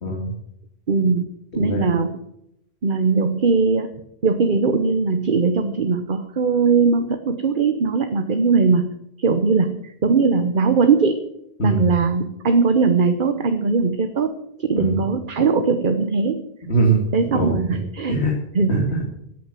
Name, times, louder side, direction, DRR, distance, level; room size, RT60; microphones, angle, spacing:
voice 1, 0.0-0.3 1.5-1.8 11.6-11.8 14.7-15.0 16.6-17.0 17.3-17.8 18.1-18.3 18.7-19.1, right 2 dB, 90° left, -1 dB, 2.7 m, -21 dB
voice 2, 0.9-1.3 1.6-2.2 2.8-3.9 4.2-8.8 9.2-11.3 11.6-14.3 14.6-16.4 17.1-18.2 18.5-18.8, right 4 dB, 50° right, 8 dB, 1.1 m, -20 dB
14.0 x 9.3 x 7.5 m, 0.78 s
omnidirectional pair, 1.1 m